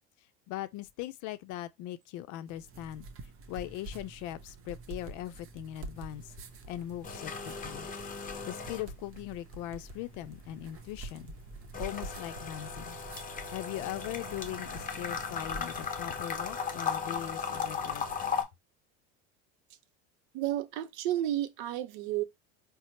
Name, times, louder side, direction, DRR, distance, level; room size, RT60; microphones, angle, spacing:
voice 1, 0.5-3.1 3.5-6.3 6.7-7.9 8.2-11.3 11.8-13.0 13.5-18.3, left 13 dB, 60° left, 0.5 m, -40 dB
sound 1, 2.5-15.9, right 3 dB, 40° right, 0.7 m, -48 dB
sound 2, 6.0-6.4 6.7-9.4 9.7-18.4, left 6 dB, 25° left, 0.7 m, -37 dB
voice 2, 20.3-22.2, right 13 dB, 75° right, 0.6 m, -32 dB
4.1 x 2.0 x 2.9 m
supercardioid pair, 100°, 33 cm